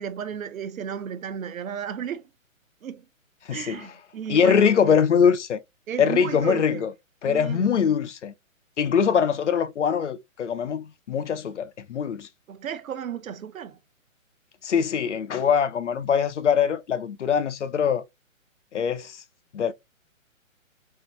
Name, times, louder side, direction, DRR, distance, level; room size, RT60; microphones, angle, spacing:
voice 1, 0.0-2.3 2.8-3.0 3.5-4.7 5.9-6.8 7.3-7.7 12.5-13.8, right 8 dB, 80° right, 0.7 m, -34 dB
voice 2, 3.5-3.9 4.3-5.6 6.0-6.9 7.2-8.3 8.8-12.3 14.6-18.0 18.7-19.2 19.5-19.7, left 7 dB, 60° left, 0.5 m, -23 dB
3.7 x 2.5 x 2.5 m
hypercardioid pair, 180°, 41 cm